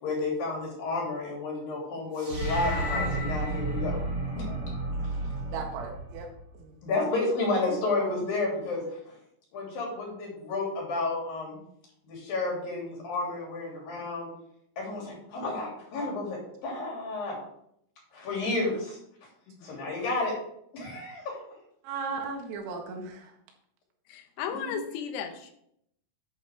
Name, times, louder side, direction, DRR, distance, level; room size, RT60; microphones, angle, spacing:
voice 1, 0.0-4.0 4.3-4.6 6.8-9.0 9.5-11.6 12.0-14.3 14.8-17.4 18.1-19.0 19.6-20.3 20.7-21.4 24.5-24.8, left 3 dB, 50° left, -2 dB, 4.3 m, -31 dB
sound 1, 2.2-6.5, right 1 dB, 70° right, 1.0 m, -31 dB
voice 2, 5.5-6.3 6.5-6.7 21.8-23.3, right 4 dB, 90° right, 2 dB, 4.3 m, -36 dB
voice 3, 24.1-25.5, left 8 dB, 85° left, 6 dB, 3.8 m, -35 dB
10.5 x 8.3 x 3.5 m, 0.73 s
omnidirectional pair, 5.9 m